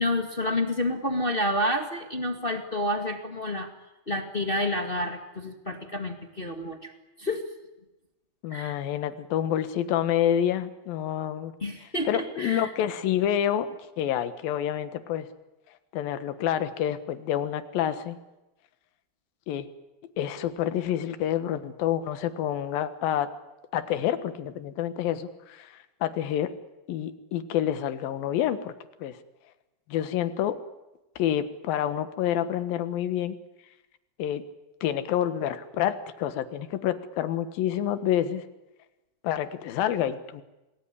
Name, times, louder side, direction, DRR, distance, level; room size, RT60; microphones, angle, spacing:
voice 1, 0.0-3.7 4.1-6.9 7.2-7.4 8.5-8.7 11.6-12.7, left 1 dB, 35° left, 5 dB, 0.9 m, -29 dB
voice 2, 8.4-11.5 12.1-15.3 15.9-18.2 19.5-19.7 20.2-23.3 23.7-26.5 26.9-28.7 29.0-29.2 29.9-30.6 31.2-33.4 34.2-34.4 34.8-38.4 39.2-40.4, left 10 dB, 70° left, 11 dB, 3.1 m, -28 dB
27.0 x 20.0 x 9.9 m, 0.99 s
omnidirectional pair, 4.6 m